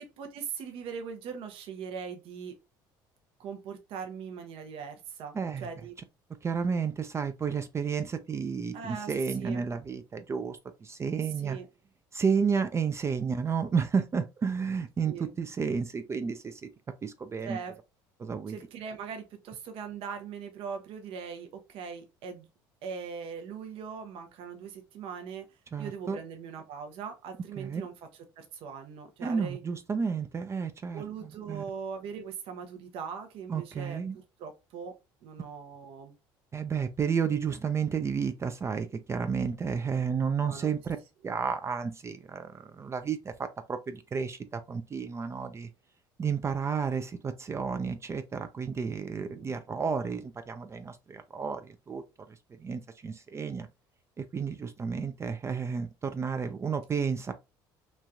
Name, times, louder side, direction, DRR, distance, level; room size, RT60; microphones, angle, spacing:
voice 1, 0.0-2.6 3.4-5.4 5.6-5.9 8.7-9.1 9.4-9.6 11.4-11.7 15.1-15.3 17.4-17.7 18.5-22.5 22.8-27.9 28.4-29.6 30.9-34.9 35.2-36.1 40.4-40.7 49.2-49.5, right 6 dB, 65° right, 0.6 m, -40 dB
voice 2, 5.3-5.7 6.4-11.6 12.1-16.7 17.0-17.6 18.2-18.6 25.7-26.2 27.6-27.8 29.2-31.6 33.5-34.2 36.5-41.0 41.2-45.7 46.2-52.0 52.3-53.7 54.2-57.3, right 6 dB, 25° right, 0.4 m, -31 dB
3.1 x 2.3 x 2.5 m
supercardioid pair, 80°, 10 cm